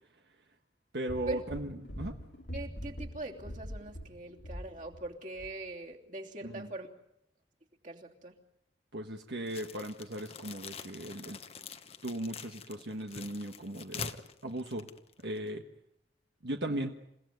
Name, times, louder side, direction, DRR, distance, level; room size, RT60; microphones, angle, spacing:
voice 1, 0.9-2.1 6.4-6.7 8.9-11.4 12.0-14.9 15.2-15.6 16.4-16.9, right 1 dB, 70° right, 4 dB, 1.4 m, -37 dB
sound 1, 1.1-5.1 5.4-5.5, equal, 75° left, 2.4 m, -43 dB
voice 2, 2.5-6.9 7.8-8.3, right 2 dB, 45° right, 1 dB, 3.1 m, -42 dB
sound 2, 9.5-15.6, left 5 dB, 35° left, 1.1 m, -45 dB
28.5 x 17.0 x 9.5 m, 0.83 s
head